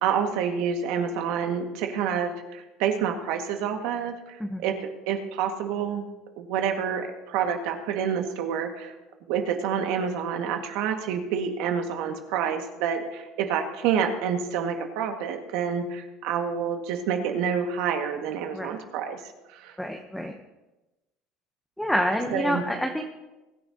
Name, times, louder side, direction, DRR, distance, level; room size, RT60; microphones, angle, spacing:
voice 1, 0.0-6.1 6.4-8.9 9.3-19.8 22.3-22.6, right 7 dB, 75° right, 4 dB, 1.8 m, -28 dB
voice 2, 19.8-20.4 21.8-23.0, equal, 5° left, 4 dB, 0.9 m, -27 dB
21.5 x 10.0 x 2.9 m, 1.0 s
cardioid pair, 125°, 0 cm